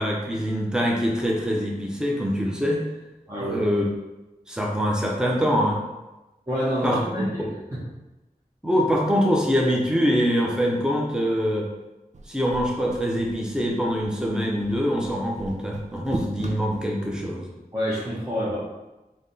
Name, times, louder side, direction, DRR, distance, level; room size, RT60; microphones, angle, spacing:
voice 1, 0.0-2.8 3.4-3.9 4.5-5.8 6.8-7.5 8.6-11.7 12.3-17.5, equal, 5° right, -2 dB, 0.7 m, -24 dB
voice 2, 3.3-3.6 6.5-7.8 17.7-18.6, equal, 25° right, -9 dB, 1.0 m, -27 dB
sound 1, 12.1-17.2, right 2 dB, 45° right, 0.4 m, -39 dB
3.4 x 2.3 x 4.0 m, 1.0 s
wide cardioid pair, 40°, 16 cm